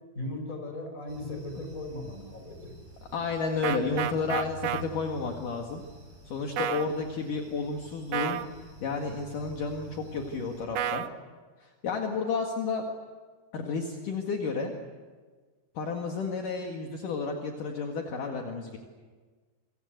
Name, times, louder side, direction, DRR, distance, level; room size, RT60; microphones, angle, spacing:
voice 1, 0.1-2.7, left 2 dB, 20° left, 4 dB, 6.0 m, -37 dB
sound 1, 1.1-10.6, equal, 50° right, 7.8 m, -49 dB
voice 2, 3.1-5.8 6.3-8.4 8.8-11.0 11.6-12.8 13.5-14.7 15.7-18.8, left 4 dB, 60° left, 2 dB, 3.3 m, -31 dB
sound 2, 3.6-4.8 6.6-6.9 8.1-8.5 10.8-11.1, right 11 dB, 70° right, 1.9 m, -30 dB
28.5 x 25.5 x 8.0 m, 1.4 s
omnidirectional pair, 4.5 m